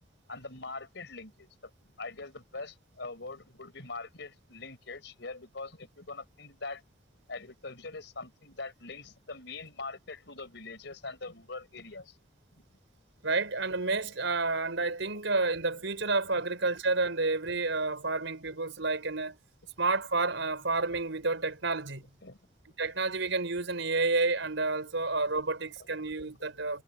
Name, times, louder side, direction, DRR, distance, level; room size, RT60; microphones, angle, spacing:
voice 1, 0.3-1.5 2.0-6.8 7.3-12.1 22.2-22.4, left 3 dB, 65° left, 5.6 m, -42 dB
voice 2, 13.2-19.4 19.8-22.0 22.8-26.8, right 3 dB, 80° right, 4.6 m, -30 dB
head